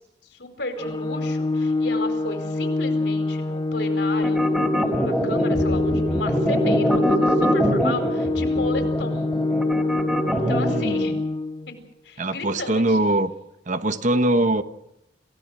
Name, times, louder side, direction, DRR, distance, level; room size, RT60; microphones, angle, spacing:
voice 1, 0.3-4.5 4.8-9.3 10.5-11.1 12.0-13.1, left 2 dB, 70° left, 6 dB, 4.6 m, -33 dB
Organ, 0.8-11.7, left 2 dB, 25° left, 1.0 m, -25 dB
sound 1, 4.2-11.0, equal, ahead, 3.2 m, -23 dB
voice 2, 10.3-11.1 12.2-13.3 13.7-14.6, right 1 dB, 45° right, 10 dB, 1.2 m, -22 dB
28.0 x 17.0 x 6.5 m, 0.83 s
head